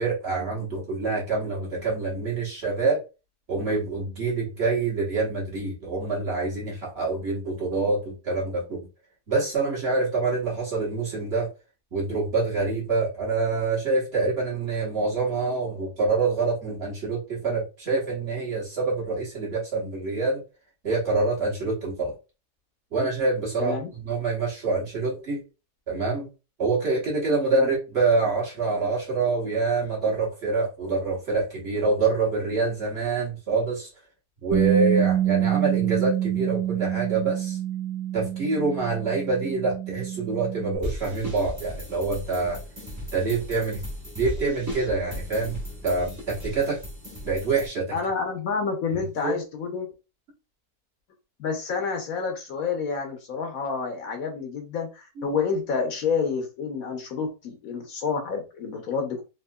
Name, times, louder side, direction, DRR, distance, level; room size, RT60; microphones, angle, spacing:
voice 1, 0.0-3.0 3.5-8.9 9.3-11.5 11.9-20.4 20.8-22.2 22.9-25.4 25.9-26.3 26.6-33.9 34.4-37.6 38.1-42.6 43.0-43.8 44.1-45.6 45.8-46.8 47.2-47.9 49.2-49.4 55.2-55.4, right 3 dB, 45° right, 1.3 m, -26 dB
voice 2, 23.6-23.9 27.6-27.7 47.9-49.9 51.4-59.2, left 5 dB, 65° left, 1.1 m, -29 dB
Bass guitar, 34.5-40.8, right 12 dB, 70° right, 1.0 m, -26 dB
sound 1, 40.8-47.7, left 1 dB, 15° right, 0.6 m, -36 dB
3.6 x 2.8 x 2.2 m
omnidirectional pair, 1.7 m